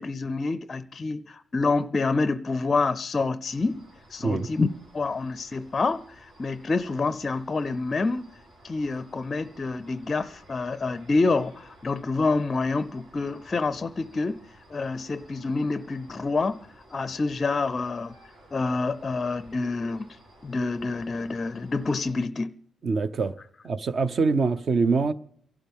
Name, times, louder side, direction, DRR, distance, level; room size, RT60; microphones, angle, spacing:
voice 1, 0.0-4.7 4.9-8.3 8.6-14.4 14.7-18.1 18.5-20.1 20.4-22.5, left 3 dB, 25° left, 0.5 m, -27 dB
sound 1, 3.5-22.1, right 1 dB, 75° right, 6.6 m, -54 dB
voice 2, 22.8-23.3 23.6-25.1, right 4 dB, 45° right, 0.7 m, -24 dB
29.0 x 12.0 x 3.6 m
cardioid pair, 145°, 0 cm